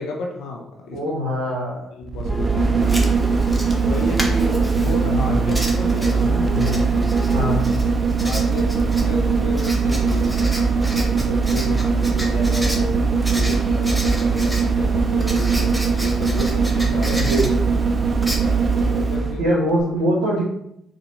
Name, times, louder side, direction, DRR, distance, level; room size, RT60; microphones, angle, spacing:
voice 1, 0.0-1.0 1.9-3.0 3.8-6.8 8.2-13.0 13.3-17.3 18.7-19.6, left 3 dB, 75° left, 0 dB, 0.8 m, -32 dB
voice 2, 0.9-1.9 4.8-5.6 6.1-6.8 7.3-7.6 17.2-17.6 19.4-20.4, equal, 85° right, -5 dB, 0.8 m, -23 dB
sound 1, 2.0-19.4 19.8-19.9, right 4 dB, 40° right, 0.5 m, -20 dB
sound 2, 2.3-7.6, left 1 dB, 10° left, 0.3 m, -34 dB
Writing, 2.8-19.2, equal, 5° right, 1.1 m, -34 dB
4.1 x 2.6 x 4.4 m, 0.78 s
hypercardioid pair, 45°, 0 cm